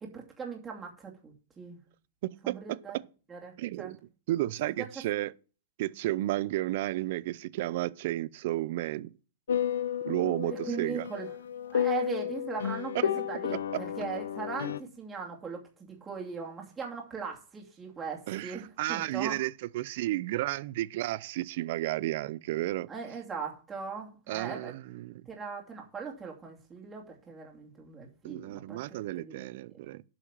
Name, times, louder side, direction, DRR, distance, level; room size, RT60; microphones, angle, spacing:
voice 1, 0.0-1.8 2.4-3.0 3.3-3.9 4.8-4.9 10.4-11.3 11.7-19.4 22.9-24.7 25.3-28.8 29.2-29.5 29.8-29.9, right 6 dB, 15° right, 2.6 m, -39 dB
voice 2, 2.2-2.8 3.6-4.0 4.3-5.3 5.8-9.1 10.0-11.0 18.3-22.9 24.3-25.2 28.2-30.0, right 16 dB, 60° right, 0.5 m, -32 dB
sound 1, 9.5-14.8, left 9 dB, 90° left, 0.7 m, -32 dB
8.2 x 5.7 x 7.2 m
hypercardioid pair, 130°, 0 cm